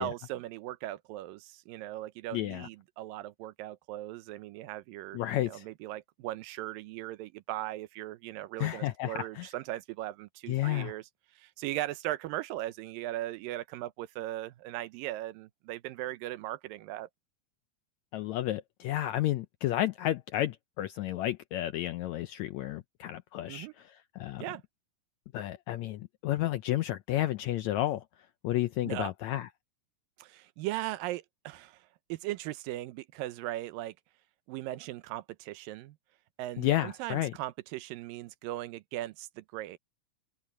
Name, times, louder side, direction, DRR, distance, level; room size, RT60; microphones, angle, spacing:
voice 1, 0.0-11.0 11.4-17.1 23.5-23.7 24.4-24.6 28.8-29.1 30.2-33.9 34.5-36.0 36.4-39.8, right 15 dB, 90° right, 2.5 m, -38 dB
voice 2, 2.3-2.7 5.1-5.7 8.6-9.5 10.5-11.0 18.1-24.4 25.3-28.0 28.4-29.5 36.6-37.3, left 14 dB, 80° left, 1.6 m, -31 dB
open air
omnidirectional pair, 3.9 m